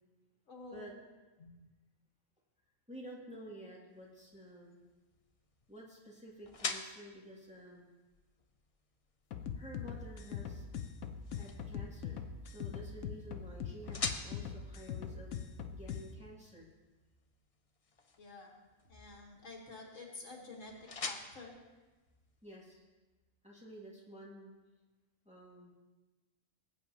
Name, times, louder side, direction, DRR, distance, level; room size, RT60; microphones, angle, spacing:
voice 1, 0.5-0.9 1.4-1.5 18.2-18.5 18.9-20.7 21.1-21.5, left 3 dB, 65° left, 0 dB, 1.9 m, -49 dB
voice 2, 2.9-4.8 5.7-7.9 9.5-10.6 11.4-15.4 15.7-16.7 22.4-22.8 23.4-24.5 25.3-25.7, equal, 5° right, -5 dB, 2.3 m, -51 dB
sound 1, 3.9-22.7, left 4 dB, 35° left, 0.6 m, -48 dB
sound 2, 9.3-16.1, left 7 dB, 85° left, 1.2 m, -42 dB
20.0 x 8.7 x 2.9 m, 1.2 s
omnidirectional pair, 1.4 m